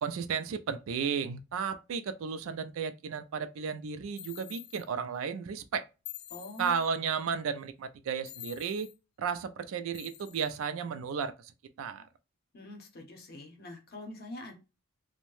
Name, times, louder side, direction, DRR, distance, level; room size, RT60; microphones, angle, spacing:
voice 1, 0.0-5.9 6.6-8.9 9.2-11.5 11.8-12.1, right 6 dB, 65° right, 0.3 m, -34 dB
sound 1, 4.2-4.9 6.0-6.9 8.2-9.0 9.9-10.6, left 13 dB, 80° left, 0.3 m, -47 dB
voice 2, 6.3-6.8 12.5-14.5, left 1 dB, 45° left, 0.7 m, -44 dB
2.6 x 2.1 x 3.0 m
head